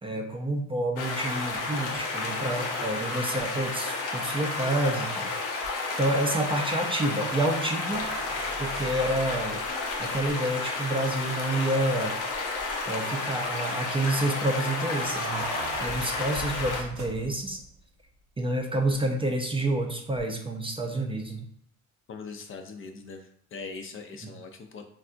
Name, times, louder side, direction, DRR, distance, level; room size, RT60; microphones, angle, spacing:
voice 1, 0.0-5.3 6.0-8.1 8.6-9.6 10.0-12.2 12.9-15.4 15.8-17.6 18.4-21.4, right 1 dB, 20° right, 2 dB, 0.4 m, -28 dB
sound 1, 1.0-16.8, left 3 dB, 90° left, 0.6 m, -32 dB
sound 2, 5.6-5.7 7.9-10.3 11.3-11.4 11.7-11.8 12.3-12.8 14.5-17.7 20.2-20.3, right 2 dB, 70° right, 0.7 m, -39 dB
voice 2, 22.1-24.9, left 4 dB, 45° left, 5 dB, 0.4 m, -41 dB
3.4 x 2.2 x 2.5 m, 0.71 s
cardioid pair, 90°, 30 cm